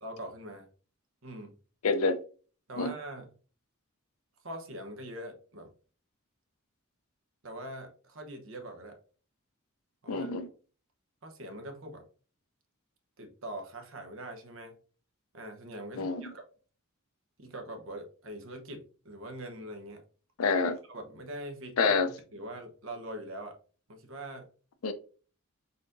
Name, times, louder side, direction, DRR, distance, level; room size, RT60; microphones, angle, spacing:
voice 1, 0.0-0.7 1.2-1.5 2.7-3.3 4.4-5.7 7.4-9.0 10.0-10.5 11.2-12.0 13.2-14.7 15.3-16.4 17.4-20.0 20.9-21.9 22.3-23.6 23.9-24.5, right 1 dB, 65° right, 5 dB, 1.0 m, -43 dB
voice 2, 1.8-2.2 2.8-2.9 10.1-10.5 16.0-16.3 20.4-20.8 21.8-22.1 24.8-24.9, left 4 dB, 80° left, 10 dB, 0.5 m, -27 dB
4.1 x 3.9 x 2.6 m, 0.39 s
head